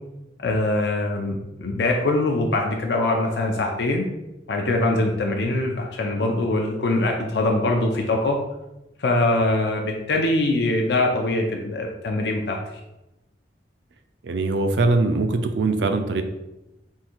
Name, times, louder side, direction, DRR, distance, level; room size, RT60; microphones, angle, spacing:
voice 1, 0.4-4.1 4.5-8.4 9.0-12.6, left 2 dB, 70° left, 2 dB, 0.5 m, -23 dB
voice 2, 14.2-16.2, right 3 dB, 80° right, 8 dB, 0.4 m, -22 dB
3.6 x 2.6 x 4.4 m, 0.96 s
head